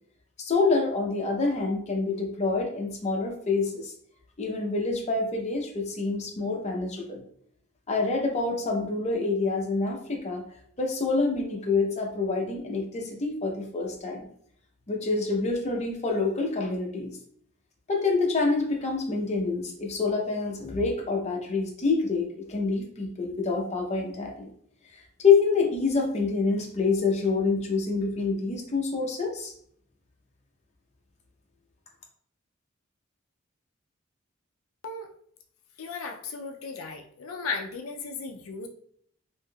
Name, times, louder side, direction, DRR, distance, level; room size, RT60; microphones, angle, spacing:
voice 1, 0.4-3.9 4.4-7.2 7.9-10.4 10.8-14.3 14.9-17.1 17.9-24.5 25.2-29.5, left 4 dB, 35° left, 1 dB, 0.6 m, -27 dB
voice 2, 35.8-38.7, left 4 dB, 90° left, 4 dB, 0.4 m, -35 dB
3.4 x 2.6 x 2.2 m, 0.62 s
head